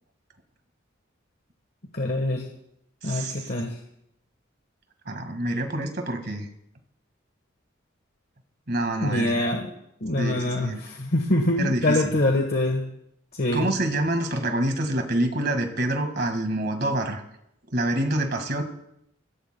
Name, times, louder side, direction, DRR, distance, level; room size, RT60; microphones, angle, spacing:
voice 1, 1.9-2.5 3.0-3.7 9.0-9.7 10.0-12.8 13.3-13.7, left 1 dB, 50° left, 2 dB, 1.3 m, -24 dB
voice 2, 3.0-3.5 5.0-6.5 8.7-9.5 10.2-10.8 11.6-12.0 13.5-17.2 17.7-18.6, right 1 dB, 50° right, 5 dB, 1.8 m, -27 dB
25.0 x 16.5 x 2.2 m, 0.78 s
head